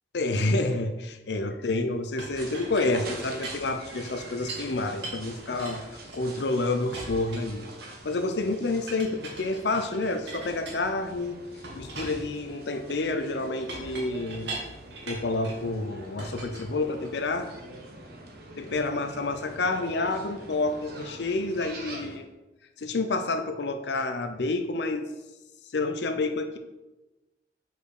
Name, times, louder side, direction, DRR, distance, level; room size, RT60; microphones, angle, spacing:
voice 1, 0.1-7.7 8.0-11.4 11.8-14.6 15.1-17.5 18.6-22.3 22.8-25.1 25.7-26.6, left 2 dB, 70° left, 8 dB, 0.6 m, -29 dB
Chink clink, 2.2-4.7 5.0-6.5 6.9-8.1 8.9-11.2 11.6-15.7 16.2-17.3, right 2 dB, 80° right, 1.7 m, -41 dB
sound 1, 2.4-22.2, right 2 dB, 60° right, 1.0 m, -45 dB
5.0 x 4.6 x 4.8 m, 1.0 s
head